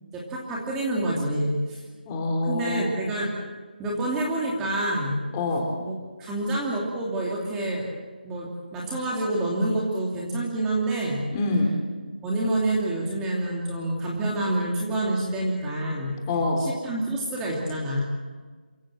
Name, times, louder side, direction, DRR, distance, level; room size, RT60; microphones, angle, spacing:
voice 1, 0.1-1.8 2.4-3.3 3.8-5.2 5.8-7.9 8.2-11.2 12.2-16.2 16.6-18.0, right 1 dB, 10° right, -4 dB, 2.7 m, -27 dB
voice 2, 2.1-2.9 5.3-5.6 11.3-11.7 16.3-16.6, left 2 dB, 15° left, 1 dB, 3.4 m, -25 dB
28.5 x 16.5 x 7.6 m, 1.4 s
figure-of-eight pair, 170°, 5 cm